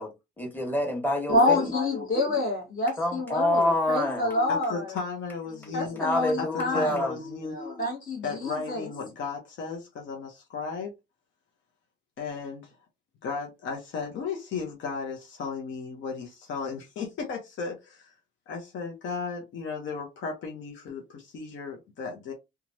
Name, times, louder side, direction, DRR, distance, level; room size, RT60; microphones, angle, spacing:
voice 1, 0.0-1.7 3.0-4.3 6.0-7.1, left 1 dB, 10° left, 1.4 m, -27 dB
voice 2, 1.3-4.9 5.7-7.0 7.5-8.9, left 2 dB, 45° left, 1.4 m, -27 dB
voice 3, 4.5-6.0 6.4-6.5 6.7-7.5 8.2-10.9 12.2-12.8 13.2-18.1 18.5-22.3, left 5 dB, 70° left, 0.9 m, -35 dB
3.0 x 2.4 x 2.6 m
cardioid pair, 90°, 20 cm